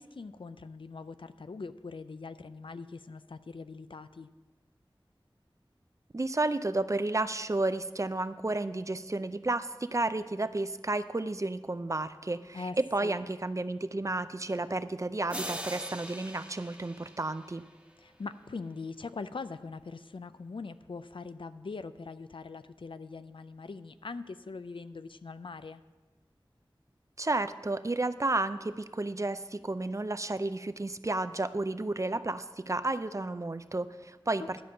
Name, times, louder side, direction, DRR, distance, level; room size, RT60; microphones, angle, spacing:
voice 1, 0.0-4.3 12.5-12.8 13.0-13.2 18.0-25.8, left 4 dB, 75° left, 12 dB, 0.4 m, -42 dB
voice 2, 6.1-17.6 27.2-34.6, right 2 dB, 35° right, 12 dB, 0.5 m, -32 dB
sound 1, 15.3-18.0, right 1 dB, 15° right, 1.2 m, -41 dB
11.5 x 5.4 x 7.6 m, 1.2 s
wide cardioid pair, 50°, 9 cm